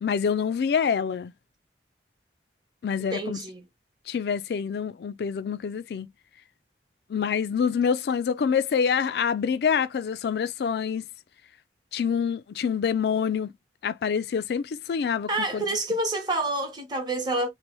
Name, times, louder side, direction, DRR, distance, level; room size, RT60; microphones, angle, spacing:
voice 1, 0.0-1.3 2.8-3.4 4.1-6.1 7.1-11.0 11.9-13.5 13.8-15.6, left 6 dB, 65° left, 0.3 m, -26 dB
voice 2, 3.1-3.6 15.3-17.5, right 2 dB, 25° right, 0.8 m, -28 dB
3.0 x 2.1 x 3.0 m
head